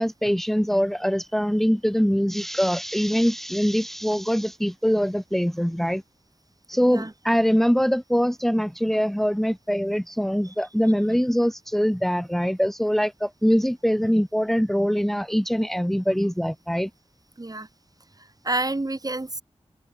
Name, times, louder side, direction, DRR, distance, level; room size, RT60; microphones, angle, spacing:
voice 1, 0.0-6.0 6.7-16.9, equal, ahead, 1.6 m, -23 dB
voice 2, 17.4-17.7 18.4-19.4, right 2 dB, 30° right, 2.9 m, -28 dB
wide cardioid pair, 80°, 12 cm